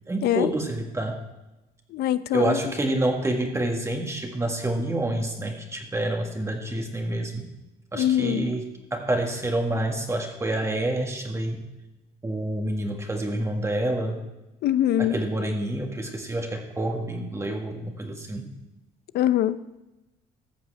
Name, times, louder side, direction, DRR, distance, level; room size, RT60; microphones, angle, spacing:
voice 1, 0.1-1.2 2.3-7.5 7.9-11.6 12.2-14.3 15.0-18.5, right 1 dB, 15° right, 2 dB, 1.6 m, -28 dB
voice 2, 1.9-2.6 7.9-8.5 14.6-15.1 19.1-19.6, left 12 dB, 70° left, 15 dB, 0.6 m, -23 dB
14.5 x 5.6 x 7.9 m, 1.0 s
cardioid pair, 110°, 17 cm